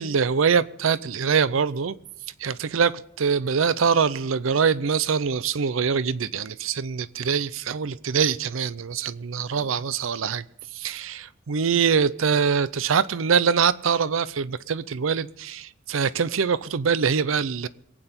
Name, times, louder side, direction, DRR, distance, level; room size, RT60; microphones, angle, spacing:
voice 1, 0.0-2.0 2.4-10.4 10.7-17.7, right 6 dB, 80° right, 0.5 m, -24 dB
23.0 x 9.0 x 4.3 m
head